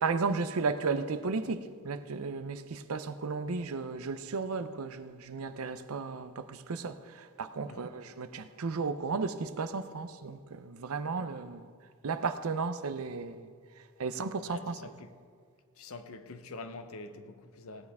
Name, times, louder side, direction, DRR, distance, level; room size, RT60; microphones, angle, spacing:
voice 1, 0.0-11.7 12.0-13.5 14.0-15.0, right 4 dB, 80° right, 0.6 m, -34 dB
voice 2, 14.5-15.1 15.8-17.9, left 3 dB, 75° left, 0.7 m, -45 dB
17.5 x 9.4 x 3.6 m
head